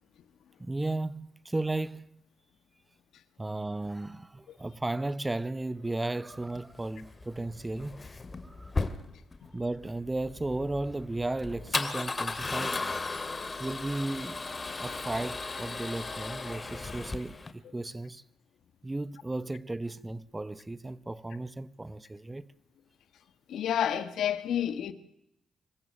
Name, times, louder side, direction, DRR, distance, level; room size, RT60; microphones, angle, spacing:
voice 1, 0.6-2.2 3.4-8.0 8.4-8.8 9.5-12.9 13.6-14.4 14.8-18.2 18.8-22.5, right 2 dB, 15° right, 1.0 m, -35 dB
Male speech man speaking / Car / Engine starting, 6.4-17.5, left 3 dB, 30° left, 2.4 m, -36 dB
voice 2, 23.5-24.9, left 9 dB, 75° left, 1.7 m, -29 dB
25.0 x 14.0 x 8.7 m
cardioid pair, 70°, 0 cm